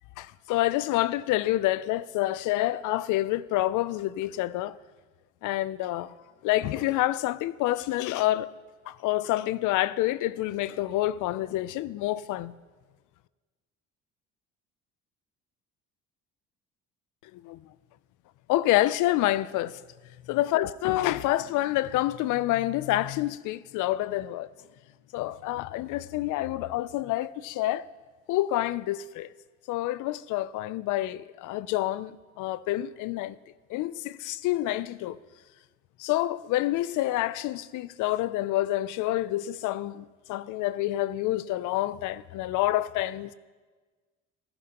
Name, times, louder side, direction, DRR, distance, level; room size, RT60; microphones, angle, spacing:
voice 1, 0.2-4.8 5.4-6.1 6.4-8.5 8.9-12.5 17.3-17.6 18.5-19.8 20.3-24.5 25.1-27.9 28.3-29.3 29.7-33.4 33.7-35.2 36.0-43.3, left 15 dB, 70° left, 0.5 m, -28 dB
15.0 x 12.0 x 2.9 m
cardioid pair, 100°, 32 cm